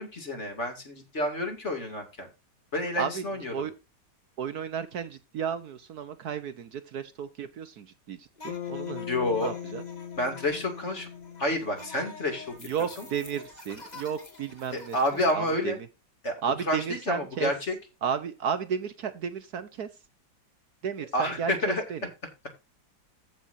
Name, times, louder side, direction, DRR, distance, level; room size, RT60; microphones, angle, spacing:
voice 1, 0.0-2.3 2.7-3.5 9.1-9.5 10.2-11.1 11.4-12.6 13.0-13.1 14.7-15.8 16.2-16.3 16.7-17.8 21.1-21.8, left 1 dB, 40° left, 4 dB, 2.9 m, -29 dB
voice 2, 4.4-9.8 12.6-15.0 15.3-15.7 16.4-17.5 18.0-19.9 20.8-22.1, right 7 dB, 65° right, 11 dB, 1.3 m, -33 dB
sound 1, 8.4-15.3, left 3 dB, 25° left, 2.2 m, -48 dB
Bass guitar, 8.5-12.8, left 9 dB, 55° left, 0.9 m, -40 dB
15.0 x 6.0 x 2.7 m, 0.27 s
omnidirectional pair, 1.9 m